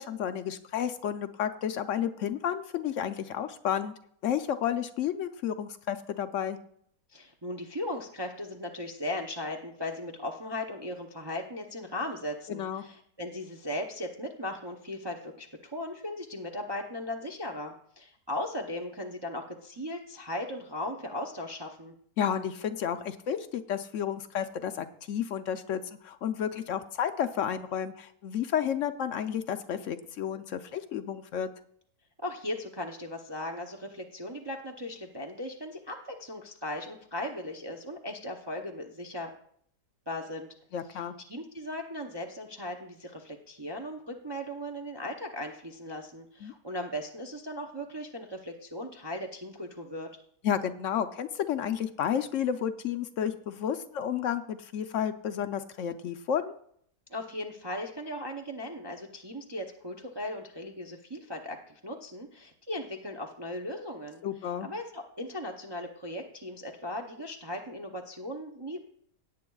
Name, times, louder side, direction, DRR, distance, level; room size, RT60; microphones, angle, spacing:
voice 1, 0.0-3.9 4.2-6.6 12.5-12.8 22.2-31.5 40.7-41.1 46.4-46.5 50.4-56.5 64.2-64.7, left 9 dB, 65° left, 8 dB, 0.8 m, -31 dB
voice 2, 7.1-21.9 32.2-39.3 40.1-40.5 40.9-50.1 57.1-64.2 64.6-69.0, left 1 dB, 45° right, 1 dB, 0.3 m, -37 dB
17.5 x 8.5 x 2.3 m, 0.64 s
omnidirectional pair, 1.8 m